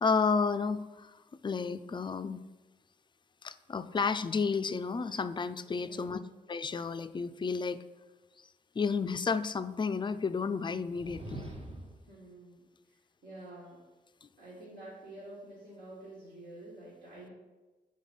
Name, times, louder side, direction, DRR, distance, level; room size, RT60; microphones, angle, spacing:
voice 1, 0.0-1.1 1.4-2.4 3.4-6.2 6.5-7.8 8.8-11.4 14.2-14.3, left 5 dB, 25° left, 12 dB, 0.4 m, -31 dB
voice 2, 5.8-6.3 12.1-13.8 14.4-17.3, right 1 dB, 70° right, -7 dB, 1.7 m, -49 dB
sound 1, 10.7-12.1, right 1 dB, 35° right, 1.2 m, -44 dB
4.9 x 3.9 x 5.3 m, 1.2 s
supercardioid pair, 45°, 18 cm